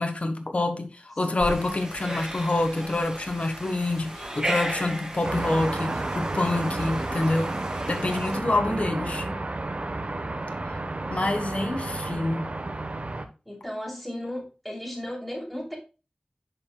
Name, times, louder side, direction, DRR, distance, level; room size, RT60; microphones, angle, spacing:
voice 1, 0.0-7.5 7.9-9.3 11.1-12.5, left 2 dB, 55° left, 1.2 m, -27 dB
voice 2, 1.3-1.6 8.6-9.5 11.6-11.7 13.4-15.8, left 1 dB, ahead, 2.8 m, -36 dB
sound 1, 1.4-8.4, right 1 dB, 25° right, 2.0 m, -36 dB
sound 2, 5.2-13.3, right 2 dB, 55° right, 0.9 m, -31 dB
10.5 x 4.7 x 2.2 m
wide cardioid pair, 50°, 3 cm